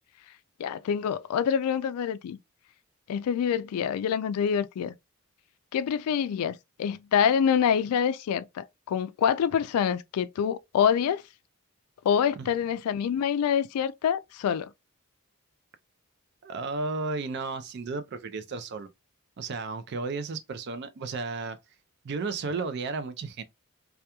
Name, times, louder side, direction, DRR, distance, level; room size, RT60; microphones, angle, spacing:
voice 1, 0.6-2.4 3.1-4.9 5.7-11.2 12.0-14.7, left 8 dB, 85° left, 0.3 m, -26 dB
voice 2, 16.4-18.9 19.4-21.6 22.0-23.4, right 4 dB, 50° right, 0.4 m, -33 dB
2.3 x 2.2 x 2.8 m
head